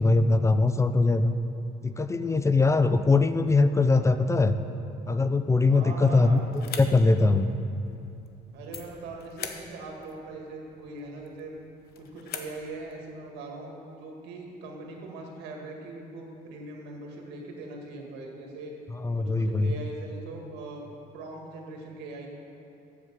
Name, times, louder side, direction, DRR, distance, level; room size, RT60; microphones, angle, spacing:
voice 1, 0.0-1.3 1.8-4.6 5.1-6.4 6.8-7.5 18.9-19.7, left 3 dB, 15° left, 10 dB, 0.4 m, -22 dB
voice 2, 2.2-2.8 5.6-6.5 8.5-11.5 12.0-13.7 14.0-18.7 19.1-20.9 21.1-22.3, right 2 dB, 90° right, 0 dB, 1.8 m, -41 dB
sound 1, 6.3-13.0, left 7 dB, 65° left, 0.9 m, -44 dB
8.2 x 7.3 x 7.3 m, 2.7 s
cardioid pair, 110°, 17 cm